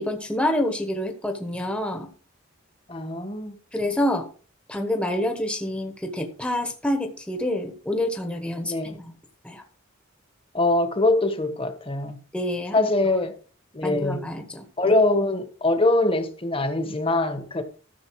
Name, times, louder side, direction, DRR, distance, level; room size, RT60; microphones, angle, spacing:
voice 1, 0.0-2.1 3.7-4.2 4.7-9.1 9.4-9.6 12.3-12.9 13.8-14.9, left 1 dB, 5° left, 1.1 m, -27 dB
voice 2, 2.9-3.6 8.6-8.9 10.5-12.2 12.7-13.3 13.7-14.2 14.8-17.6, left 2 dB, 25° left, 1.3 m, -23 dB
13.0 x 6.8 x 4.7 m
head